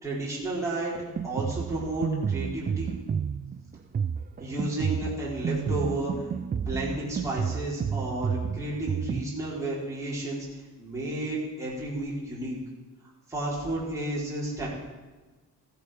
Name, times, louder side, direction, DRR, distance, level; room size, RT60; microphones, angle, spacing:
voice 1, 0.0-2.9 4.4-12.6 13.3-14.7, right 1 dB, 10° right, -8 dB, 4.2 m, -32 dB
Drum kit, 0.9-9.2, right 7 dB, 25° right, 0.3 m, -31 dB
15.5 x 11.0 x 5.1 m, 1.2 s
wide cardioid pair, 155°, 36 cm